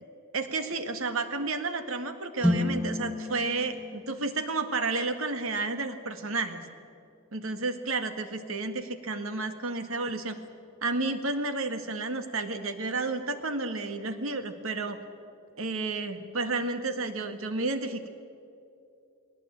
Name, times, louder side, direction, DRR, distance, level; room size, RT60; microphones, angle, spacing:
voice 1, 0.3-6.6 7.3-10.4 10.8-15.0 15.6-18.1, right 3 dB, 65° right, 8 dB, 1.8 m, -31 dB
sound 1, 2.4-6.5, left 1 dB, 5° right, 1.5 m, -33 dB
21.0 x 18.5 x 8.9 m, 2.6 s
head